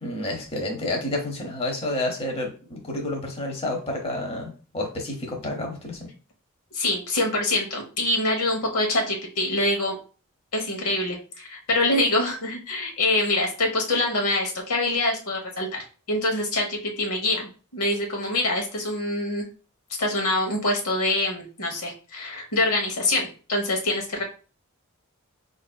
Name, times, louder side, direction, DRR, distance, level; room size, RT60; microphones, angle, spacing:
voice 1, 0.0-6.1, left 1 dB, 30° left, 0 dB, 0.8 m, -30 dB
voice 2, 6.7-10.0 10.5-15.8 16.1-19.4 20.0-24.2, left 2 dB, 90° left, 1 dB, 1.0 m, -25 dB
4.6 x 2.6 x 2.2 m, 0.37 s
head